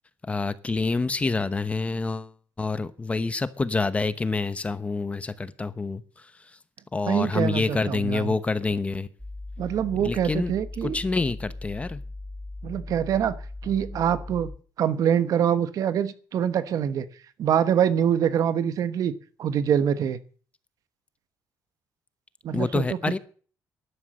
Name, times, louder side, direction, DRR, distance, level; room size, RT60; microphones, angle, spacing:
voice 1, 0.3-2.3 2.6-6.3 6.9-9.1 10.0-10.5 10.8-12.0 22.5-23.2, left 3 dB, 20° left, 14 dB, 0.9 m, -27 dB
voice 2, 7.1-8.3 9.6-11.0 12.6-13.4 13.6-14.5 14.8-17.1 17.4-19.1 19.4-20.2 22.4-23.2, right 9 dB, 60° right, 13 dB, 1.2 m, -24 dB
sound 1, 9.2-14.6, left 2 dB, ahead, 1.1 m, -38 dB
11.5 x 11.5 x 7.7 m, 0.43 s
cardioid pair, 125°, 7 cm